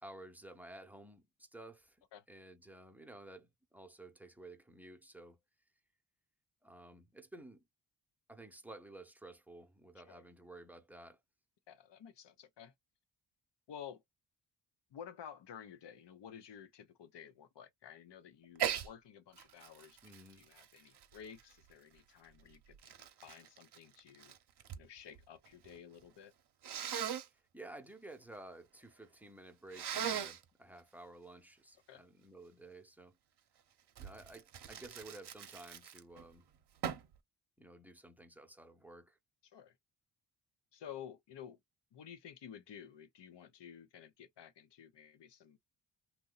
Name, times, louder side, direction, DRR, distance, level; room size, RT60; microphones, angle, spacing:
voice 1, 0.0-5.4 6.6-7.6 8.3-11.2 20.0-20.5 27.2-33.2 34.0-36.4 37.6-39.2, right 2 dB, 5° right, 0.8 m, -53 dB
voice 2, 11.7-12.7 13.7-14.0 14.9-24.3 24.8-26.3 31.9-32.0 39.4-39.8 40.7-41.6 41.9-45.6, left 8 dB, 60° left, 0.7 m, -53 dB
Sneeze, 18.6-18.9 19.4-21.7 22.4-24.9 25.1-25.8 26.6-27.3 29.7-30.4 34.0-36.2 36.8-37.2, right 9 dB, 55° right, 0.8 m, -40 dB
2.7 x 2.1 x 3.8 m
cardioid pair, 70°, 48 cm